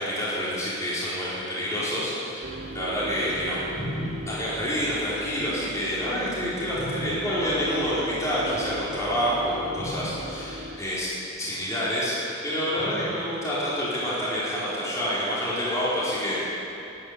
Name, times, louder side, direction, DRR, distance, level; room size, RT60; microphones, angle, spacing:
voice 1, 0.0-3.6 4.3-11.1 11.4-12.2 12.4-16.4, equal, 15° left, -9 dB, 4.5 m, -28 dB
sound 1, 2.4-10.8, equal, 50° right, 1.3 m, -39 dB
sound 2, 3.3-7.2 8.2-8.8 9.3-9.5 9.8-10.2 11.4-11.5 12.8-13.2 14.4-14.5, left 1 dB, 50° left, 1.8 m, -37 dB
13.0 x 10.0 x 9.7 m, 2.9 s
head